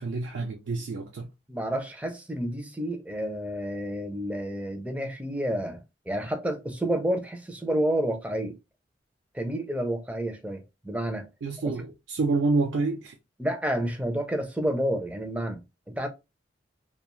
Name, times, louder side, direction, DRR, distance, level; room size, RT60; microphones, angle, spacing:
voice 1, 0.0-1.3 11.4-13.2, right 3 dB, 75° right, 0.4 m, -28 dB
voice 2, 1.5-5.8 6.1-8.6 9.3-11.3 11.6-11.7 13.4-16.1, right 1 dB, 5° right, 0.4 m, -30 dB
2.3 x 2.2 x 2.9 m
head